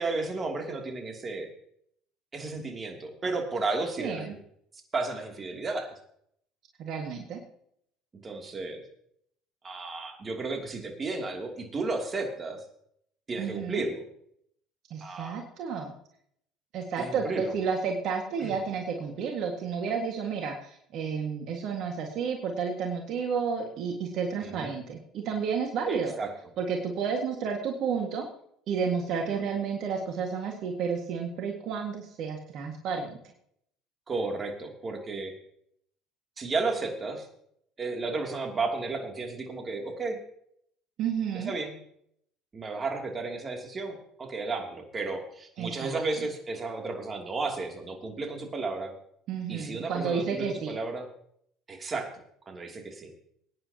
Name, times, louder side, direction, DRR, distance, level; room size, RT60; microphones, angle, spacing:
voice 1, 0.0-1.5 2.3-4.3 4.9-5.9 8.2-8.8 9.6-12.6 13.3-14.0 15.0-15.4 17.0-17.5 18.4-18.5 24.4-24.7 25.9-26.3 29.3-29.4 34.1-35.3 36.4-37.3 37.8-40.2 41.3-41.8 42.5-48.9 49.5-51.0 51.7-52.1 52.5-53.1, right 3 dB, 30° right, 3 dB, 2.9 m, -33 dB
voice 2, 4.0-4.4 6.8-7.4 13.4-13.8 14.9-15.9 16.7-26.1 26.6-28.3 28.7-33.2 41.0-41.5 45.6-46.0 49.3-50.8, right 6 dB, 60° right, 2 dB, 1.9 m, -31 dB
21.5 x 9.9 x 2.9 m, 0.69 s
hypercardioid pair, 70°, 0 cm